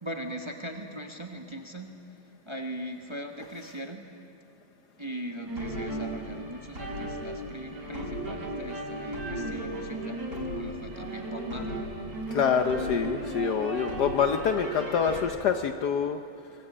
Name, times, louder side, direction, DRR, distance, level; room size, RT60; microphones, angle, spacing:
voice 1, 0.0-4.1 5.0-11.9, right 1 dB, 15° right, 4 dB, 1.2 m, -40 dB
sound 1, 5.5-15.2, right 1 dB, 55° right, 5.1 m, -35 dB
voice 2, 12.3-16.2, left 7 dB, 65° left, 8 dB, 1.2 m, -26 dB
25.0 x 19.5 x 8.6 m, 2.5 s
omnidirectional pair, 2.2 m